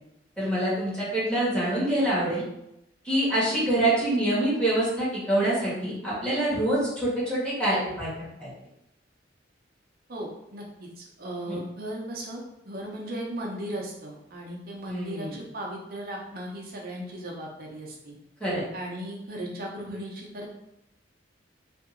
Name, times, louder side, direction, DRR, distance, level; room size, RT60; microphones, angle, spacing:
voice 1, 0.4-2.4 3.0-8.5 11.5-11.6 14.8-15.3 18.4-18.6, right 1 dB, 5° left, -9 dB, 1.4 m, -26 dB
voice 2, 10.1-18.2 18.7-20.5, right 1 dB, 50° right, -2 dB, 0.7 m, -37 dB
2.8 x 2.6 x 3.7 m, 0.84 s
head